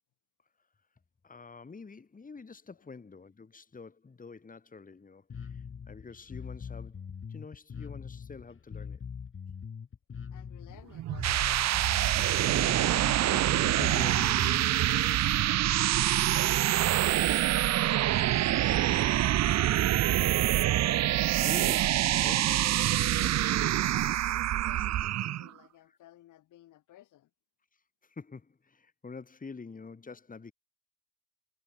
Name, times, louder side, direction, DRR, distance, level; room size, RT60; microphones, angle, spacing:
voice 1, 1.2-9.0 12.8-14.8 15.1-15.4 21.4-22.7 23.2-23.4 25.9-26.0 27.7-30.5, left 4 dB, 25° left, 2.8 m, -47 dB
Bass guitar, 5.3-14.8, left 6 dB, 45° left, 3.9 m, -42 dB
voice 2, 10.3-12.0 17.1-20.9 23.8-27.3, left 14 dB, 80° left, 6.4 m, -56 dB
sound 1, 10.9-25.5, right 13 dB, 60° right, 0.7 m, -26 dB
cardioid pair, 90°, 30 cm